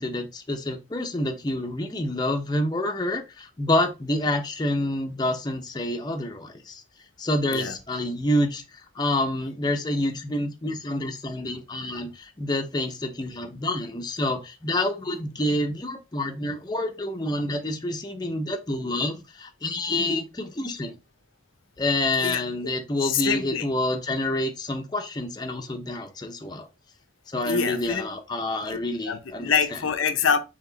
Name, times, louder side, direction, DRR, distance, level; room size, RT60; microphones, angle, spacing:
voice 1, 0.0-6.8 7.2-20.9 21.8-26.7 27.3-29.5, left 1 dB, 20° left, 0.5 m, -28 dB
voice 2, 22.2-22.7 23.0-23.7 27.4-28.1 28.7-28.8 29.1-30.4, left 7 dB, 85° left, 0.6 m, -26 dB
4.7 x 2.9 x 3.8 m
head